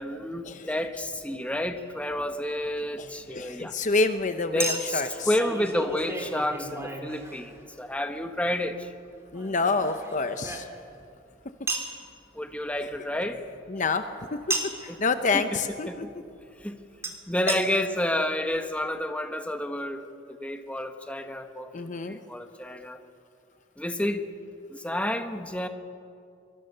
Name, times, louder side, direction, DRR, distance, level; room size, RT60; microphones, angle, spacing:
voice 1, 0.0-3.8 4.5-8.9 12.3-13.4 14.9-15.0 15.3-15.6 15.9-16.1 16.6-16.7 17.3-20.0 20.3-23.0 23.8-24.3 24.7-25.7, left 1 dB, 5° left, 7 dB, 1.2 m, -30 dB
Chink clink, 1.8-1.9 4.6-7.8 9.3-11.0 11.7-11.9 14.5-14.9 17.0-17.1 17.5-17.6 18.3-18.4 18.5-18.6, right 2 dB, 15° right, 2.7 m, -34 dB
voice 2, 3.0-5.3 9.3-10.7 13.7-14.0 14.8-16.1 17.5-17.6 21.7-22.2, left 3 dB, 40° left, 9 dB, 0.8 m, -27 dB
24.5 x 23.0 x 6.8 m, 2.5 s
head